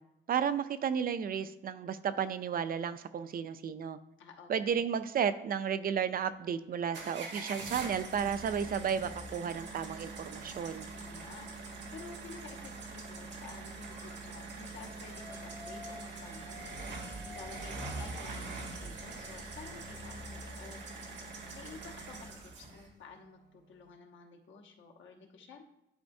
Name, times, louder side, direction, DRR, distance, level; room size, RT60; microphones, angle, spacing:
voice 1, 0.3-4.0 4.5-10.9, right 7 dB, 50° right, 12 dB, 0.4 m, -33 dB
voice 2, 4.2-4.8 11.0-16.7 17.2-20.8 21.5-25.6, left 4 dB, 75° left, 2 dB, 1.1 m, -51 dB
sound 1, 6.9-22.9, right 3 dB, 65° right, 1.8 m, -43 dB
sound 2, 13.9-14.2 15.0-18.6, left 2 dB, 15° left, 2.1 m, -51 dB
11.5 x 4.2 x 2.7 m, 0.91 s
wide cardioid pair, 145°, 20 cm